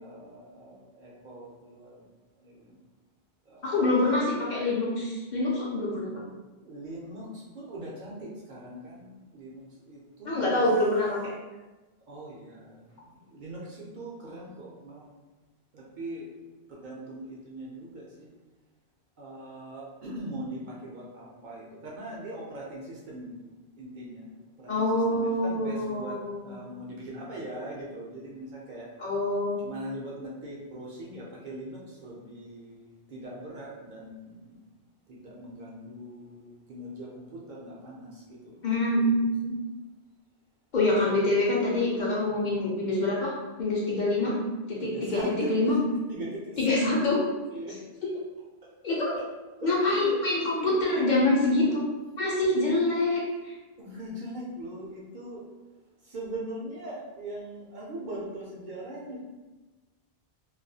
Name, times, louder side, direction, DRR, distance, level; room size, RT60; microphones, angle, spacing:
voice 1, 0.0-2.0 2.4-2.8 3.5-3.8 6.6-10.6 12.1-15.1 15.7-16.3 16.7-18.3 19.2-23.3 23.8-24.3 24.6-28.9 29.6-34.5 35.1-38.6 38.9-39.2 42.3-42.7 44.8-47.1 47.5-48.1 48.9-49.3 49.6-50.2 50.6-51.0 51.6-51.7 53.8-55.4 56.0-59.2, right 1 dB, 60° right, -4 dB, 0.6 m, -41 dB
voice 2, 3.6-6.1 10.3-11.3 24.7-26.6 29.0-29.6 38.6-39.6 40.7-43.3 43.6-44.3 44.7-45.2 45.5-45.8 46.6-47.2 48.8-49.1 49.6-51.8 52.2-53.5, left 2 dB, 55° left, -5 dB, 0.6 m, -25 dB
2.3 x 2.2 x 2.6 m, 1.2 s
omnidirectional pair, 1.0 m